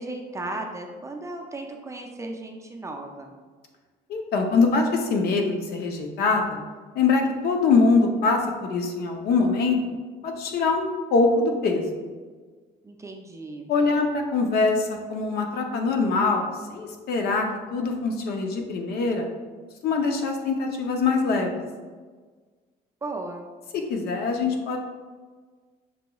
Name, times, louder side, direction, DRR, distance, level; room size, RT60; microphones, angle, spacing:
voice 1, 0.0-3.3 12.8-13.7 23.0-23.5, right 2 dB, 15° right, 2 dB, 0.4 m, -35 dB
voice 2, 4.1-6.6 6.9-9.8 10.2-11.9 13.7-19.3 19.8-21.6 23.7-24.8, left 4 dB, 70° left, 3 dB, 0.7 m, -23 dB
6.0 x 2.9 x 2.3 m, 1.4 s
cardioid pair, 110°, 17 cm